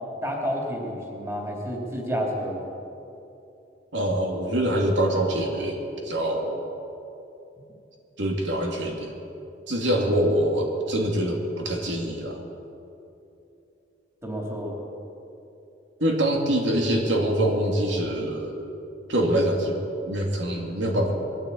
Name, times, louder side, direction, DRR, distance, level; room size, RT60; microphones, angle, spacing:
voice 1, 0.2-2.6 14.2-14.7, equal, 15° right, -1 dB, 3.5 m, -30 dB
voice 2, 3.9-6.6 8.2-9.1 9.7-12.5 16.0-18.6 19.1-19.8 20.1-21.1, right 1 dB, 80° right, 1 dB, 2.7 m, -24 dB
21.5 x 14.0 x 8.6 m, 2.8 s
head